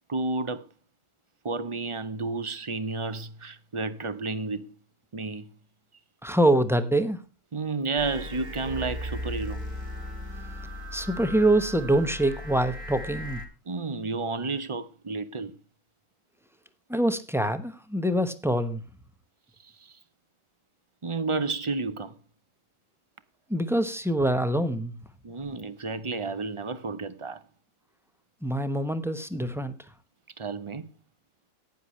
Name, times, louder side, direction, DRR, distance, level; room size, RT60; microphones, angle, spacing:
voice 1, 0.1-0.6 1.4-4.7 5.1-5.5 7.5-9.6 13.7-15.5 19.6-20.0 21.0-22.1 25.2-27.4 30.4-30.9, right 3 dB, 30° right, 0.5 m, -31 dB
voice 2, 6.2-7.2 10.9-13.4 16.9-18.8 23.5-24.9 28.4-29.8, right 1 dB, ahead, 0.8 m, -25 dB
sound 1, 8.0-13.5, left 1 dB, 65° right, 2.0 m, -37 dB
15.0 x 10.0 x 3.1 m
omnidirectional pair, 1.5 m